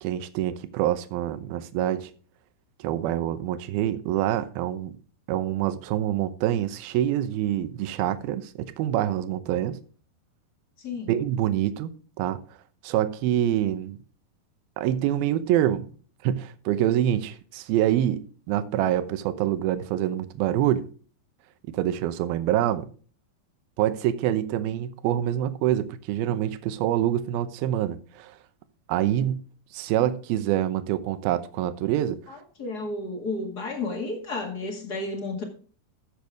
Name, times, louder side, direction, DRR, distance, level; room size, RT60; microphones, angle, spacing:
voice 1, 0.0-2.1 2.8-4.9 5.3-9.8 11.1-11.9 12.2-12.4 12.8-14.0 14.8-15.9 16.2-20.9 21.7-22.9 23.8-28.3 28.9-29.4 29.7-32.2, right 12 dB, 75° right, 2.5 m, -26 dB
voice 2, 10.8-11.1 32.3-35.4, left 2 dB, 40° left, 1.4 m, -32 dB
14.5 x 6.8 x 3.5 m
omnidirectional pair, 4.8 m